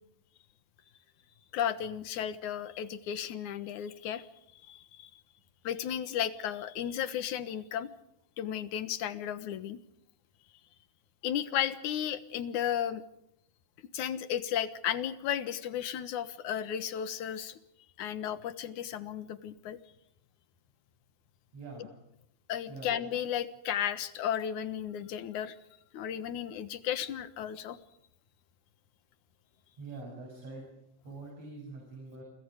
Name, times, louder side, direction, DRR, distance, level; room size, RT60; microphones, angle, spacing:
voice 1, 1.5-4.3 4.7-5.1 5.6-7.9 8.4-9.8 11.2-13.0 13.9-17.6 18.0-19.8 22.5-25.6 25.9-27.8, left 10 dB, 80° left, 13 dB, 2.7 m, -34 dB
voice 2, 21.5-21.9 22.7-22.9 29.8-30.6 31.0-32.2, right 3 dB, 55° right, 0 dB, 8.5 m, -44 dB
29.0 x 26.0 x 5.1 m, 0.79 s
omnidirectional pair, 3.4 m